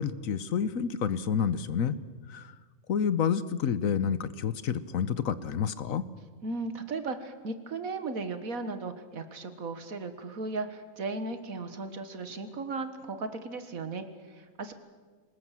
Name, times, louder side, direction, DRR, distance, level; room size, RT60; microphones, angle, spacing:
voice 1, 0.0-2.0 2.3-2.5 2.9-6.0, left 7 dB, 70° left, 15 dB, 1.3 m, -29 dB
voice 2, 6.4-14.7, right 3 dB, 75° right, 9 dB, 2.0 m, -36 dB
23.5 x 20.0 x 7.5 m, 1.5 s
omnidirectional pair, 1.5 m